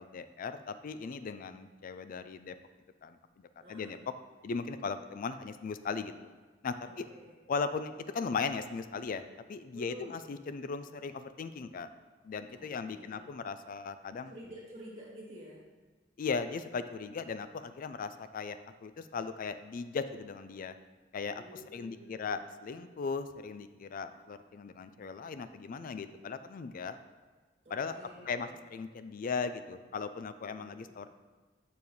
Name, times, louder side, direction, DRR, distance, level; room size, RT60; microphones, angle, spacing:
voice 1, 0.0-2.5 3.0-3.2 3.7-4.0 4.4-6.3 6.6-7.1 7.5-9.2 9.5-11.9 12.2-14.3 16.2-20.8 21.1-21.4 21.7-27.0 27.7-28.0 28.3-31.1, left 5 dB, 45° left, 11 dB, 0.4 m, -37 dB
voice 2, 6.8-7.3 9.7-10.2 12.5-13.3 14.3-15.6 21.3-22.3 27.6-28.5 30.4-30.9, equal, 35° right, -6 dB, 1.9 m, -50 dB
7.0 x 6.9 x 3.1 m, 1.4 s
head